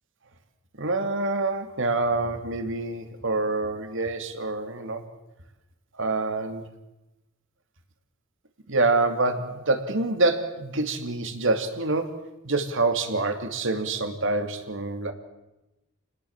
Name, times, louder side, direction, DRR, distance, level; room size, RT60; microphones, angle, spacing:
voice 1, 0.8-5.0 6.0-6.6 8.7-12.2 12.4-15.1, right 3 dB, 65° right, 7 dB, 2.8 m, -26 dB
29.5 x 19.5 x 7.4 m, 0.98 s
head